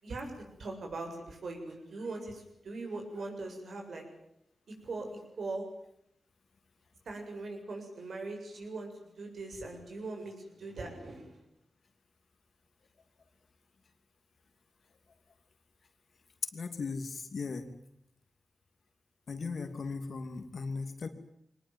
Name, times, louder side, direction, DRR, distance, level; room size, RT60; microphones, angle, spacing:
voice 1, 0.0-4.0 4.8-5.7 7.1-11.4, right 2 dB, 70° right, 3 dB, 7.3 m, -41 dB
voice 2, 16.5-17.7 19.3-21.1, left 4 dB, 60° left, 8 dB, 2.8 m, -37 dB
23.0 x 19.5 x 9.6 m, 0.76 s
cardioid pair, 65°, 0 cm